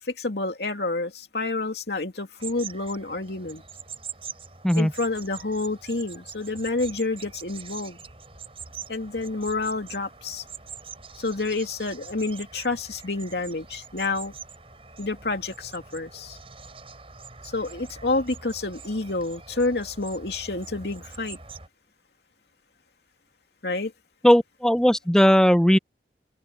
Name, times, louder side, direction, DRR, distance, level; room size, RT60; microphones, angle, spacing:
voice 1, 0.2-3.6 4.8-8.0 8.9-10.4 11.2-14.3 15.0-16.4 17.5-21.4 23.6-23.9, left 3 dB, 70° left, 2.6 m, -29 dB
sound 1, 2.4-21.7, right 6 dB, 30° right, 7.9 m, -44 dB
voice 2, 24.2-25.8, equal, 5° left, 0.4 m, -18 dB
open air
head